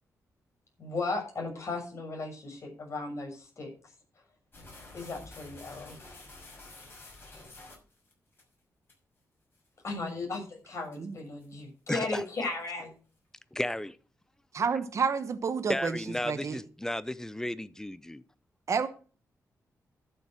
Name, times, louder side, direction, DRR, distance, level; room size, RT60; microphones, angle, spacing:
voice 1, 0.8-3.7 4.9-6.0 9.8-12.9, left 3 dB, 50° left, 6.5 m, -36 dB
sound 1, 4.5-8.4 8.9-9.0 9.5-9.7 10.1-10.4 10.8-11.1 11.4-11.5 11.9-12.6, left 2 dB, 35° left, 6.1 m, -50 dB
voice 2, 11.9-12.2 13.5-14.0 15.7-18.2, left 1 dB, 10° left, 0.7 m, -33 dB
voice 3, 14.5-16.6 18.7-18.9, right 5 dB, 55° right, 1.2 m, -30 dB
11.5 x 7.2 x 6.4 m
cardioid pair, 95°, 6 cm